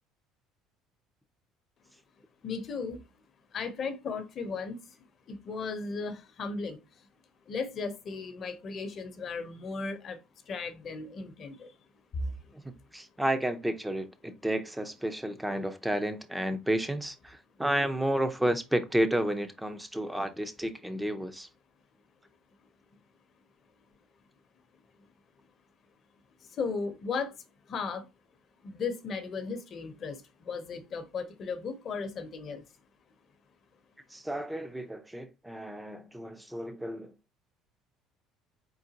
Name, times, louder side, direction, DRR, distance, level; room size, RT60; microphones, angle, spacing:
voice 1, 2.4-3.0 3.5-5.0 5.3-6.8 7.5-10.2 10.5-11.7 12.1-12.5 26.5-27.3 27.7-28.1 28.6-32.6, left 4 dB, 45° left, 0.9 m, -36 dB
voice 2, 12.6-21.5 34.1-37.1, right 1 dB, 5° right, 0.7 m, -31 dB
4.3 x 3.9 x 2.9 m
cardioid pair, 110°, 0 cm